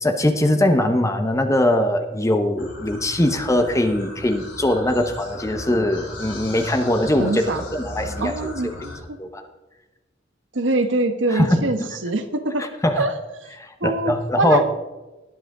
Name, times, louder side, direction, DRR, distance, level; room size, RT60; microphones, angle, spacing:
voice 1, 0.0-7.4 7.7-8.7 9.2-9.5 11.3-11.6 12.8-13.0 13.6-14.6, left 1 dB, 15° left, 7 dB, 0.8 m, -21 dB
sound 1, 2.6-9.0, left 1 dB, 80° left, 3.6 m, -37 dB
voice 2, 7.2-7.6 8.2-9.2 10.5-12.6 13.0-13.1 13.4-13.5 13.8-14.7, right 2 dB, 85° right, 8 dB, 1.2 m, -24 dB
20.0 x 7.7 x 3.8 m, 1.1 s
head